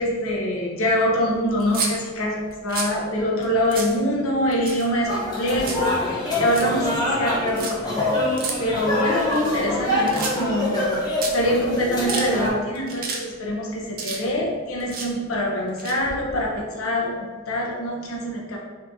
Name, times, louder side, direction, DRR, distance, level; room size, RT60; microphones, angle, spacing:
voice 1, 0.0-8.0 8.6-11.0 11.3-18.6, equal, 90° left, -1 dB, 0.7 m, -24 dB
sound 1, 1.6-1.9 2.5-3.0 3.4-3.5 3.7-4.0 4.5-5.1 5.3-5.9 6.3-6.7 7.5-7.7 8.4-8.5 9.2-9.8 10.1-10.6 10.9-11.0 11.2-11.3 11.8-12.3 12.8-13.2 13.5-14.5 14.8-15.1 15.7-16.6, right 5 dB, 45° right, 0.5 m, -30 dB
sound 2, 5.0-12.5, left 1 dB, 20° left, 0.7 m, -25 dB
2.7 x 2.6 x 3.5 m, 1.4 s
head